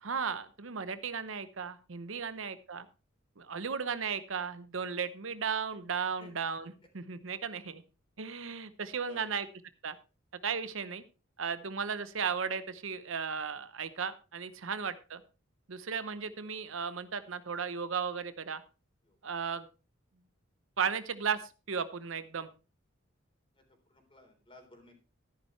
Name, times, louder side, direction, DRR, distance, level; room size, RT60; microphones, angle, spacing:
voice 1, 0.0-2.9 3.4-7.8 8.2-9.5 9.8-10.0 10.4-11.0 11.4-15.2 15.7-18.6 19.2-19.7 20.8-22.5, right 6 dB, 75° right, 13 dB, 0.8 m, -35 dB
voice 2, 2.2-2.6 6.2-6.3 7.3-7.7 9.1-9.4 14.6-14.8 19.0-19.3 23.5-25.0, left 1 dB, 25° left, 4 dB, 3.8 m, -58 dB
13.0 x 11.0 x 3.2 m, 0.32 s
head